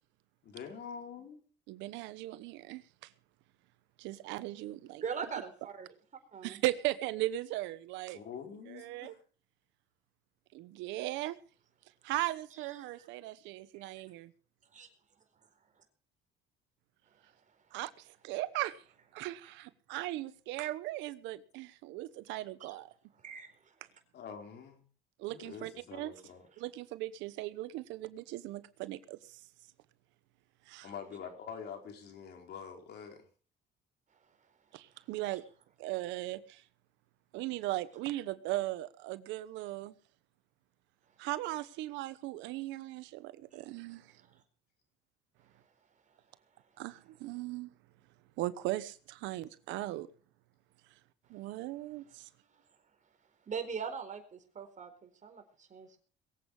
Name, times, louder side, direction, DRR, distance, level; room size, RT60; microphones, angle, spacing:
voice 1, 0.4-1.4 8.1-9.2 24.1-24.8 25.3-26.5 30.8-33.2, left 7 dB, 65° left, 4.7 m, -46 dB
voice 2, 1.7-3.1 4.0-5.0 6.4-8.2 8.7-9.1 10.5-11.4 12.0-14.3 17.7-17.9 18.2-18.8 19.1-22.9 25.2-26.1 26.6-29.4 30.7-30.9 34.7-35.4 35.8-36.6 37.3-39.9 41.2-44.1 46.8-47.7 48.4-50.1 51.3-52.3, right 16 dB, 90° right, 1.1 m, -38 dB
voice 3, 5.0-5.9 6.3-6.6 13.0-13.1 13.7-13.8 14.7-14.9 23.2-23.5 51.4-51.6 53.5-56.0, right 6 dB, 45° right, 4.4 m, -41 dB
22.0 x 8.4 x 5.5 m
cardioid pair, 90°, 19 cm